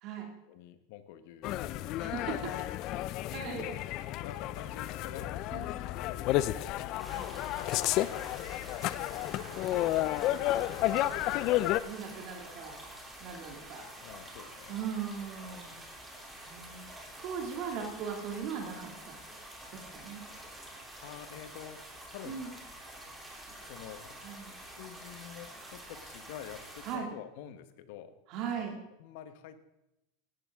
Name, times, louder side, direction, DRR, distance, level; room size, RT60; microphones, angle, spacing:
voice 1, 0.5-1.6 2.3-3.2 4.2-9.4 14.0-14.8 15.5-15.7 21.0-22.4 23.0-23.1 23.6-24.2 24.8-28.2 28.6-28.7 29.0-29.6, left 10 dB, 65° left, 11 dB, 1.1 m, -49 dB
sound 1, 1.4-11.8, left 15 dB, 50° left, 0.5 m, -32 dB
voice 2, 2.0-2.3 3.3-3.8 5.5-5.7 7.1-7.3 9.4-11.3 11.8-12.8 13.2-13.9 14.7-15.7 16.4-16.9 17.2-19.2 19.7-20.2 22.2-22.5 24.2-24.6 26.8-27.1 28.3-28.8, right 7 dB, 55° right, 2 dB, 2.3 m, -39 dB
sound 2, 7.0-27.0, right 1 dB, 5° right, 3.1 m, -48 dB
16.5 x 11.5 x 3.7 m, 0.91 s
hypercardioid pair, 110°, 0 cm